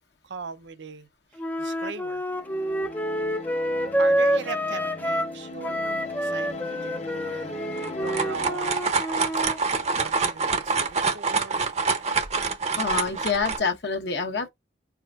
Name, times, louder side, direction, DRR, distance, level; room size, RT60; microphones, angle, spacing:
voice 1, 0.2-2.3 3.1-7.6 8.0-8.8 9.9-11.7, right 5 dB, 80° right, 0.6 m, -40 dB
Wind instrument woodwind instrument, 1.4-5.3 5.6-9.6, equal, 10° left, 0.4 m, -27 dB
sound 1, 2.3-8.6, left 2 dB, 35° left, 0.7 m, -38 dB
sound 2, 7.8-13.6, right 4 dB, 40° right, 0.7 m, -26 dB
voice 2, 12.8-14.5, left 5 dB, 65° left, 1.1 m, -27 dB
4.8 x 4.3 x 2.4 m
head